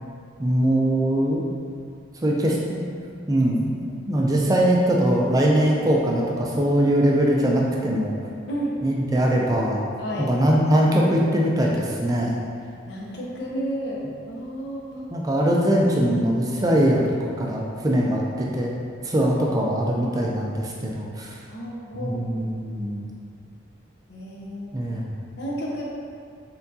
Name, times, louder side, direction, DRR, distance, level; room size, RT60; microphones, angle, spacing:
voice 1, 0.4-1.5 2.2-2.8 3.3-3.8 4.1-8.1 8.8-9.8 10.2-12.3 15.1-18.7 19.0-21.4 21.9-23.1 24.7-25.1, right 1 dB, 20° right, -2 dB, 0.4 m, -21 dB
voice 2, 10.0-10.3 12.9-15.0 21.5-22.5 24.1-24.7 25.4-25.8, equal, 60° left, -4 dB, 0.8 m, -32 dB
4.3 x 3.8 x 2.8 m, 2.2 s
head